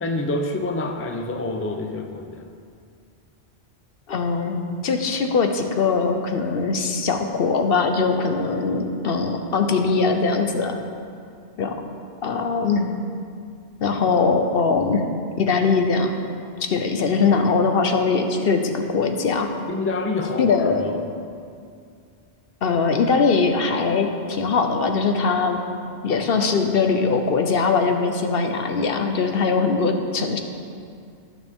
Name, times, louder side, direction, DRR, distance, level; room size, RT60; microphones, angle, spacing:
voice 1, 0.0-2.5 19.7-21.1, left 2 dB, 15° left, 5 dB, 0.5 m, -27 dB
voice 2, 4.1-10.8 11.6-11.8 12.2-12.9 13.8-15.1 15.4-16.2 16.6-19.5 20.4-20.8 22.6-25.6 26.0-30.4, left 4 dB, 60° left, 5 dB, 1.0 m, -21 dB
18.0 x 6.5 x 3.6 m, 2.3 s
omnidirectional pair, 1.1 m